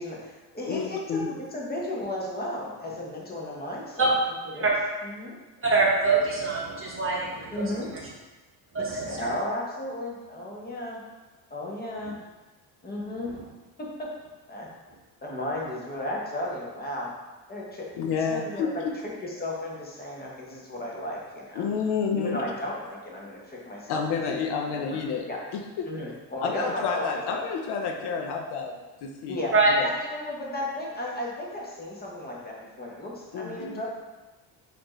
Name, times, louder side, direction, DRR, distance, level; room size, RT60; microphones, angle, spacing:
voice 1, 0.0-4.7 5.0-5.4 7.5-7.9 8.9-11.0 11.5-12.1 12.8-13.3 13.8-14.1 14.5-14.7 15.2-17.1 17.5-17.9 18.3-18.8 19.2-21.7 22.1-24.0 24.7-25.4 25.9-27.0 27.3-27.4 29.3-29.5 29.8-33.9, left 1 dB, 20° left, -3 dB, 1.0 m, -34 dB
voice 2, 0.7-1.3 18.0-18.9 21.5-22.4 23.9-25.9 26.4-29.4 29.7-29.9 33.3-33.8, left 5 dB, 70° left, 4 dB, 0.6 m, -30 dB
voice 3, 5.6-8.1 8.7-9.3 13.3-13.4 29.5-29.7, right 3 dB, 30° right, -3 dB, 1.0 m, -25 dB
4.3 x 2.7 x 3.0 m, 1.2 s
cardioid pair, 95°, 42 cm